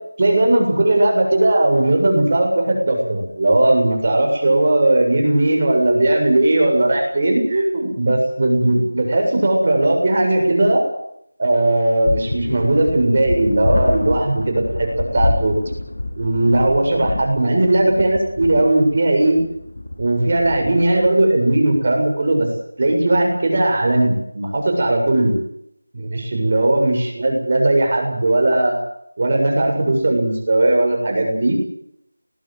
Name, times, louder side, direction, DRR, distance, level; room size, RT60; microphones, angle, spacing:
voice 1, 0.2-10.8 11.4-14.9 15.1-15.6 16.2-19.4 20.0-22.5 22.8-25.3 25.9-28.8 29.2-31.6, right 1 dB, 30° right, 2 dB, 7.4 m, -17 dB
sound 1, 12.1-21.1, left 2 dB, 60° left, 7.4 m, -27 dB
20.0 x 20.0 x 9.3 m, 0.74 s
figure-of-eight pair, 175°, 0 cm